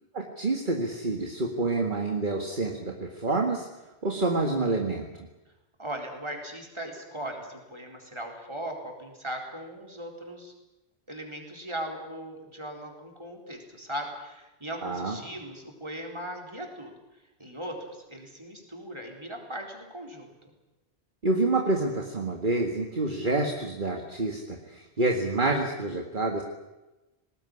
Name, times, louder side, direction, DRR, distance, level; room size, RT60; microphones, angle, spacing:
voice 1, 0.1-3.7 4.0-5.1 14.8-15.2 21.2-26.4, right 2 dB, 50° right, 3 dB, 2.0 m, -28 dB
voice 2, 5.8-10.5 11.1-16.9 17.4-20.3, right 1 dB, 25° right, 2 dB, 4.3 m, -38 dB
19.5 x 19.0 x 9.9 m, 1.0 s
omnidirectional pair, 1.1 m